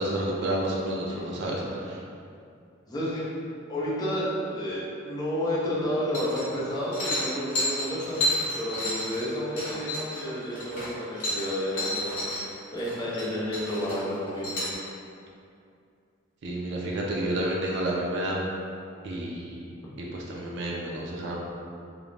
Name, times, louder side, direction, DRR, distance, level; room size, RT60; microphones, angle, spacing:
voice 1, 0.0-2.0 16.4-18.4 19.0-19.6 20.0-21.4, right 1 dB, 60° right, -3 dB, 0.3 m, -30 dB
voice 2, 1.1-1.4 2.9-3.4 3.7-8.2 8.5-12.2 12.7-14.7, equal, 20° left, -8 dB, 0.5 m, -31 dB
sound 1, 6.1-6.6 6.9-12.4 12.7-13.3 13.5-14.7, left 1 dB, 60° left, 1.1 m, -31 dB
2.5 x 2.1 x 3.1 m, 2.5 s
head